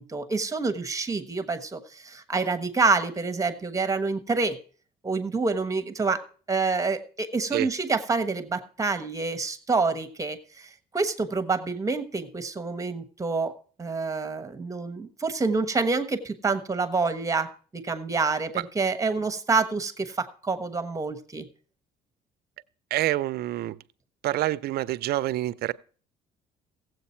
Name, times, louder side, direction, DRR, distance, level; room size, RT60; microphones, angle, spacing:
voice 1, 0.0-4.6 5.0-21.5, right 4 dB, 20° right, 1.2 m, -27 dB
voice 2, 22.9-23.8 24.2-25.7, right 15 dB, 70° right, 0.5 m, -27 dB
16.0 x 7.9 x 4.4 m
cardioid pair, 110°, 17 cm